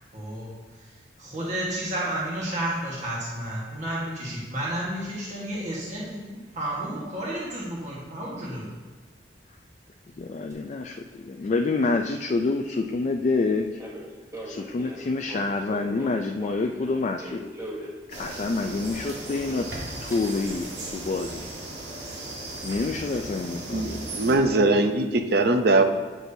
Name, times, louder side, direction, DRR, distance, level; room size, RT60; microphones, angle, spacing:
voice 1, 0.1-0.5 1.2-8.7, right 1 dB, 45° right, -6 dB, 1.4 m, -31 dB
voice 2, 10.2-13.8 14.4-17.4 18.1-19.7 20.0-21.5 22.6-24.0 24.2-24.4, left 3 dB, 40° left, 4 dB, 0.4 m, -27 dB
sound 1, 10.5-10.6 13.8-18.0 18.7-18.8 19.0-20.5, right 1 dB, 15° right, 0.9 m, -41 dB
sound 2, 18.1-24.3, right 1 dB, 85° right, 1.7 m, -37 dB
voice 3, 23.7-25.8, right 2 dB, 65° right, 7 dB, 0.6 m, -21 dB
8.1 x 6.1 x 2.7 m, 1.5 s
head